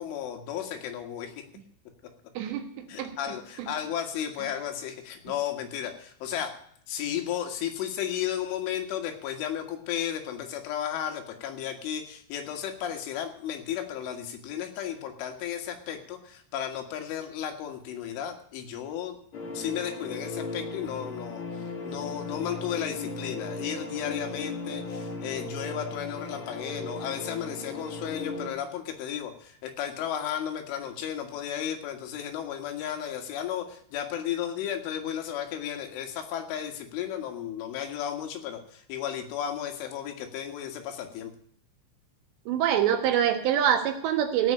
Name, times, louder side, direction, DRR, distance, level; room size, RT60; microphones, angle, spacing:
voice 1, 0.0-1.3 2.9-6.5 6.9-19.2 19.5-41.3, left 10 dB, 85° left, 4 dB, 4.2 m, -34 dB
voice 2, 2.4-3.1 3.6-3.7 42.5-44.5, right 9 dB, 70° right, 6 dB, 3.3 m, -25 dB
sound 1, 19.3-28.5, left 2 dB, 65° left, 1.2 m, -37 dB
17.0 x 5.7 x 8.9 m, 0.63 s
omnidirectional pair, 5.5 m